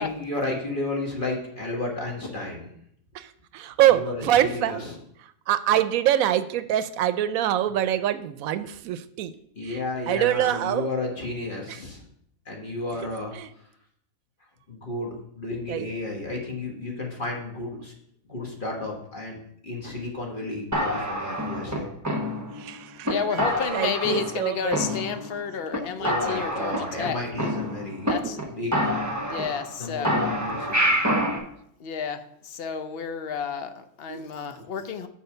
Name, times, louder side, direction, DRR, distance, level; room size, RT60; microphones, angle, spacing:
voice 1, 0.0-2.7 3.9-5.0 9.5-12.0 12.4-13.7 14.7-17.9 18.3-19.4 19.6-21.9 26.0-28.2 28.5-29.0 29.8-31.0, left 2 dB, 40° left, -1 dB, 1.6 m, -32 dB
voice 2, 3.5-4.8 5.5-9.3 9.7-9.8 10.1-10.9 13.4-13.5 15.7-15.9 22.6-23.1 23.7-24.8 34.1-34.3, right 12 dB, 85° right, 13 dB, 1.0 m, -24 dB
sound 1, 20.7-22.7 23.0-23.1 23.4-24.4 24.7-25.4 25.7-25.8 26.0-28.1 28.4-28.5 28.7-29.8 30.0-31.4, equal, 15° right, 1.0 m, -27 dB
voice 3, 23.1-27.2 28.1-28.4 29.2-30.1 31.8-35.1, left 6 dB, 55° left, 10 dB, 0.7 m, -31 dB
6.6 x 4.9 x 6.5 m, 0.71 s
omnidirectional pair, 1.4 m